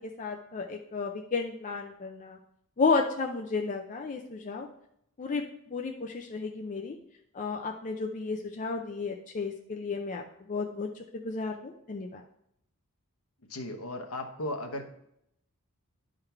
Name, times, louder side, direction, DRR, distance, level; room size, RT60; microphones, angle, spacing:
voice 1, 0.2-2.4 2.8-4.7 5.2-5.4 5.7-7.0 7.3-10.2 10.5-10.9 11.2-12.2, left 4 dB, 35° left, 2 dB, 0.5 m, -32 dB
voice 2, 13.5-14.9, left 1 dB, 70° left, 4 dB, 1.0 m, -36 dB
11.0 x 3.9 x 4.5 m, 0.76 s
head